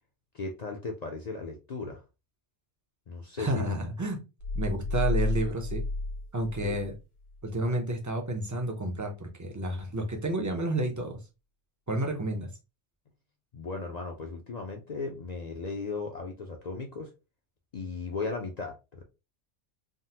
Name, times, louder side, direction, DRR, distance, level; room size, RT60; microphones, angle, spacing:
voice 1, 0.3-2.0 3.1-3.7 6.6-6.8 13.5-17.1 17.7-19.0, left 4 dB, 55° left, 2 dB, 0.5 m, -36 dB
voice 2, 3.4-4.2 4.5-5.8 6.3-6.9 7.4-11.2 11.9-12.5, right 1 dB, 30° right, 2 dB, 0.3 m, -30 dB
sound 1, 4.4-7.0 7.3-7.4, left 2 dB, 75° left, 1.2 m, -31 dB
3.6 x 2.0 x 2.7 m, 0.28 s
omnidirectional pair, 1.2 m